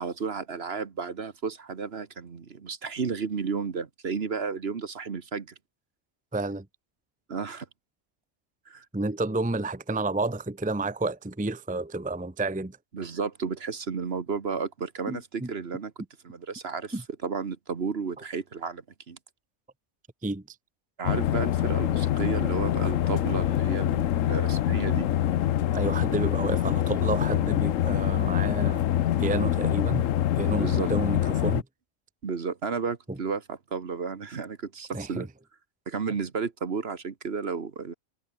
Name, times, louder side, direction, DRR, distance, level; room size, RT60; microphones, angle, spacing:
voice 1, 0.0-5.5 7.3-7.7 8.7-8.8 12.9-15.9 16.2-16.9 17.2-19.2 21.0-25.1 30.6-30.9 32.2-35.3 35.9-37.9, right 5 dB, 50° right, 1.5 m, -32 dB
voice 2, 6.3-6.7 8.9-12.8 15.1-15.5 16.9-17.0 20.2-20.6 25.7-28.8 29.2-30.1 30.3-31.6 33.1-33.2 34.9-35.3, right 2 dB, 5° right, 0.8 m, -30 dB
sound 1, 21.0-31.6, left 11 dB, 70° left, 1.1 m, -25 dB
omnidirectional pair, 1.5 m